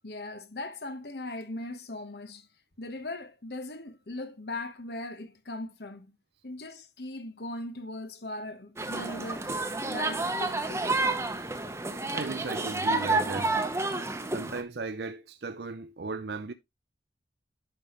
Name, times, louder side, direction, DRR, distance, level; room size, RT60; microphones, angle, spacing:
voice 1, 0.0-2.5 2.8-6.1 6.4-9.6 9.9-10.8, left 2 dB, 65° left, 1.2 m, -39 dB
sound 1, 8.8-14.6, right 2 dB, 15° right, 1.0 m, -30 dB
voice 2, 12.1-13.6 14.3-16.5, right 3 dB, 65° right, 0.6 m, -36 dB
10.0 x 5.9 x 3.1 m
head